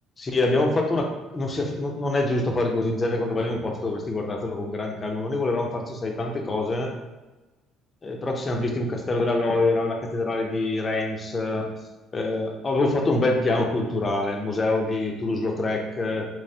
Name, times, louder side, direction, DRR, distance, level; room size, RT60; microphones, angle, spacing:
voice 1, 0.2-1.1 1.3-6.9 8.0-11.7 12.1-16.3, left 2 dB, 30° left, 2 dB, 0.6 m, -25 dB
3.3 x 3.2 x 2.7 m, 1.1 s
cardioid pair, 115°, 0 cm